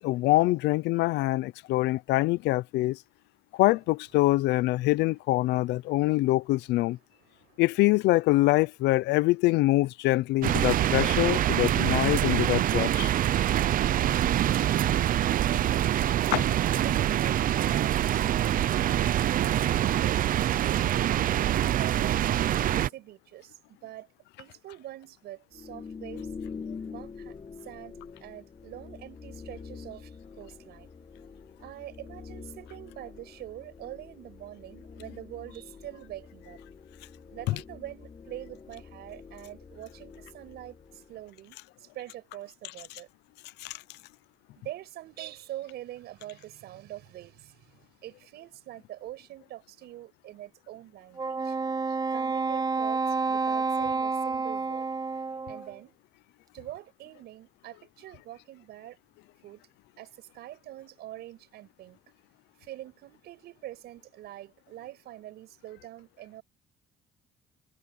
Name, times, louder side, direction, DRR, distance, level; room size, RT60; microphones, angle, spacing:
voice 1, 0.0-3.0 3.5-7.0 7.6-13.1 16.3-16.4 37.5-37.6 43.6-43.8, left 18 dB, 85° left, 0.7 m, -24 dB
voice 2, 7.2-7.6 13.1-20.8 21.4-22.2 22.6-24.1 24.4-26.3 26.9-27.4 27.6-30.9 31.6-36.6 37.3-43.1 44.5-51.6 52.1-54.9 55.5-56.0 56.5-59.0 59.4-59.6 60.0-62.0 62.6-66.4, right 14 dB, 75° right, 7.3 m, -44 dB
sound 1, 10.4-22.9, right 12 dB, 55° right, 0.8 m, -25 dB
sound 2, 25.5-41.3, left 5 dB, 30° left, 7.3 m, -45 dB
Wind instrument woodwind instrument, 51.2-55.8, right 4 dB, 20° right, 0.7 m, -29 dB
cardioid pair, 110°, 17 cm